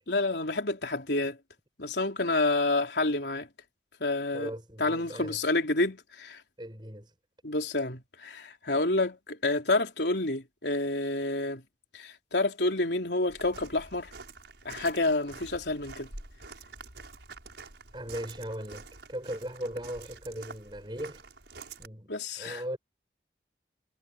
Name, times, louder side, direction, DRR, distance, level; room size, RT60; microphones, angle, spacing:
voice 1, 0.1-1.4 1.8-3.5 4.0-4.5 4.8-6.4 7.4-11.6 11.9-14.1 14.6-16.1 22.1-22.6, left 2 dB, 80° left, 3.6 m, -29 dB
voice 2, 4.3-5.4 6.6-7.1 17.9-21.2 21.8-22.8, equal, 25° right, 7.8 m, -38 dB
Walk footsteps, 13.3-21.9, right 3 dB, 90° right, 6.1 m, -47 dB
head